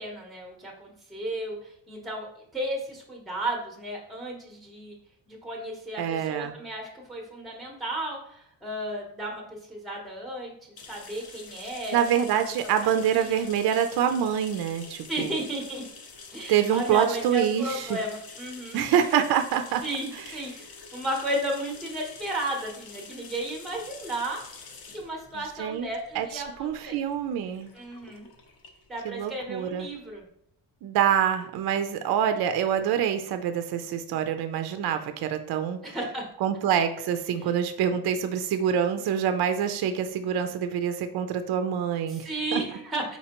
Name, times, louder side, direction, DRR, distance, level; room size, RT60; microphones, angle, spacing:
voice 1, 0.0-5.0 5.3-12.1 12.8-13.4 15.1-15.8 16.3-18.8 19.8-24.4 24.9-27.0 27.7-28.3 28.9-30.2 35.8-36.2 42.1-43.2, right 1 dB, ahead, 1 dB, 0.8 m, -34 dB
voice 2, 6.0-6.6 11.9-15.3 16.5-18.0 18.7-19.8 20.2-20.3 25.6-25.9 26.1-27.7 29.0-29.9 30.8-35.8 36.4-42.6, right 9 dB, 55° right, 8 dB, 0.5 m, -26 dB
sound 1, 10.8-30.2, left 4 dB, 55° left, 0.7 m, -47 dB
4.3 x 4.3 x 2.9 m, 0.71 s
cardioid pair, 155°, 44 cm